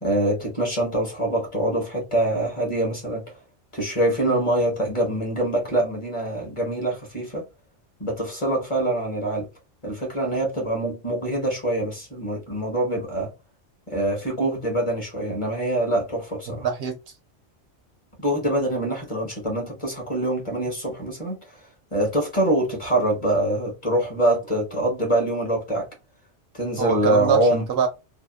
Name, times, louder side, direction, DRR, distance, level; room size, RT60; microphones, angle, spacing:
voice 1, 0.0-3.4 3.7-7.4 8.0-9.5 9.8-13.3 13.9-16.7 18.2-21.4 21.9-25.9 26.5-27.7, right 1 dB, 30° left, 0.8 m, -24 dB
voice 2, 16.5-17.1 26.8-27.9, right 7 dB, 65° right, 0.7 m, -24 dB
2.7 x 2.2 x 2.3 m
omnidirectional pair, 1.2 m